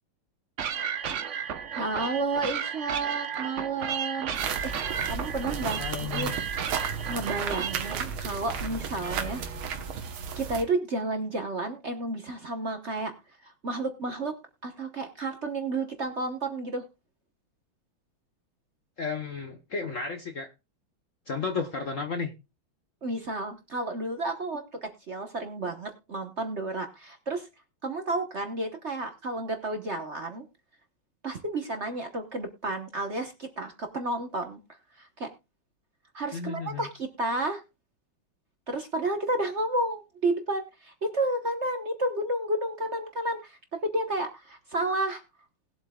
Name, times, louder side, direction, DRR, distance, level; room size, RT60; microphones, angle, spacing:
sound 1, 0.6-8.0, right 8 dB, 60° right, 0.7 m, -33 dB
voice 1, 1.8-4.3 4.6-4.7 5.1-6.4 6.9-9.4 10.3-13.1 13.4-14.3 14.6-16.8 23.0-27.5 27.8-30.4 31.2-34.6 34.9-35.3 36.1-37.6 38.7-45.2, right 2 dB, 40° right, 5 dB, 1.1 m, -31 dB
sound 2, 4.3-10.6, right 6 dB, 75° right, 2.0 m, -34 dB
voice 2, 5.8-6.3 19.0-20.5 21.3-22.3 36.3-36.9, left 5 dB, 50° left, 6 dB, 1.0 m, -33 dB
20.0 x 7.8 x 2.3 m, 0.27 s
omnidirectional pair, 2.3 m